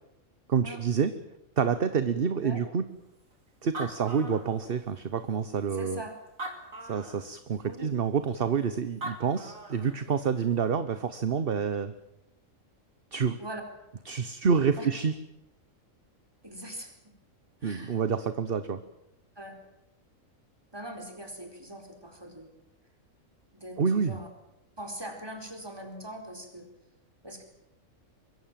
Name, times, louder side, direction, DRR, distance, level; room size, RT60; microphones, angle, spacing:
voice 1, 0.5-1.1 1.6-2.8 3.6-6.0 6.8-11.9 13.1-13.4 14.0-15.1 17.6-18.8 23.8-24.1, right 6 dB, 45° right, 12 dB, 1.1 m, -28 dB
Animal, 3.3-3.4 3.6-5.0 5.6-5.7 6.3-7.3 8.7-8.8 9.0-10.0, right 2 dB, 80° right, 3.5 m, -40 dB
voice 2, 5.7-6.1 7.6-7.9 13.4-13.6 14.8-14.9 16.4-16.9 17.6-18.0 19.4-19.6 20.7-22.5 23.5-24.3 24.8-26.7 27.2-27.4, right 1 dB, 15° right, 4 dB, 4.5 m, -41 dB
24.0 x 22.5 x 7.5 m, 0.85 s
omnidirectional pair, 1.4 m